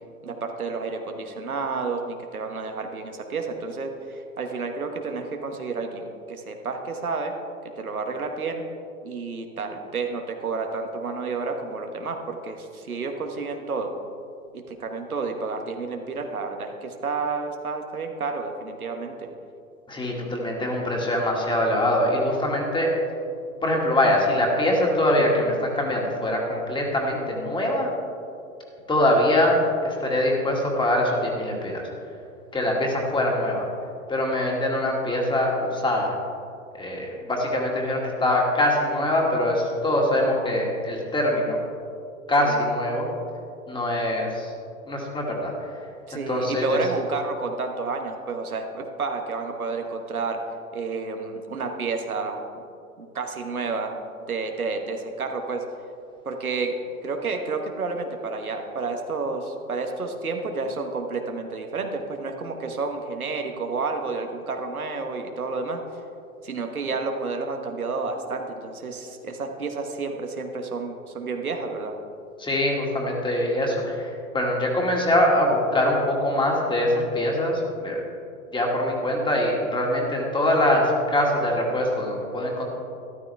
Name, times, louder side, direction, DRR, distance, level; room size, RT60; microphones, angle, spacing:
voice 1, 0.2-7.3 7.8-8.6 9.0-13.9 14.5-19.3 42.4-42.7 46.1-50.4 50.7-52.4 53.0-53.9 54.3-55.6 56.2-56.7 57.0-65.8 66.4-72.0, right 4 dB, 85° right, 4 dB, 1.3 m, -30 dB
voice 2, 19.9-22.9 23.6-27.9 28.9-31.9 32.5-33.7 34.1-36.1 36.7-41.6 42.3-43.1 43.7-44.5 44.9-45.5 46.3-46.8 72.4-78.0 78.5-82.6, left 1 dB, 10° left, -1 dB, 2.1 m, -23 dB
13.0 x 12.5 x 3.4 m, 2.5 s
figure-of-eight pair, 105°, 42 cm